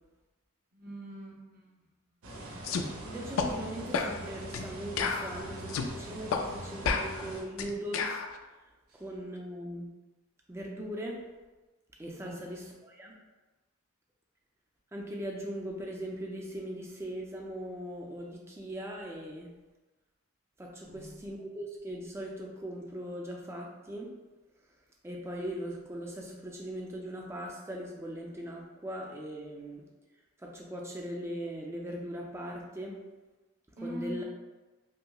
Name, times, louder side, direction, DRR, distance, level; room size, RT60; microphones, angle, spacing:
voice 1, 0.7-1.7 12.2-12.4 20.9-21.1 33.7-34.2, equal, 45° right, -3 dB, 0.7 m, -41 dB
sound 1, 2.2-7.4, right 1 dB, 90° right, 0.7 m, -43 dB
sound 2, 2.6-2.9 3.4-3.5 3.9-4.1 4.5-4.7 5.0-5.9 6.3-6.4 6.8-8.3, left 5 dB, 80° left, 0.3 m, -31 dB
voice 2, 3.0-8.2 8.9-9.9 10.5-11.2 12.0-13.2 14.9-19.5 20.6-24.1 25.0-29.8 30.4-33.0 33.8-34.2, equal, 10° right, -1 dB, 0.4 m, -40 dB
5.3 x 2.0 x 2.2 m, 1.2 s
head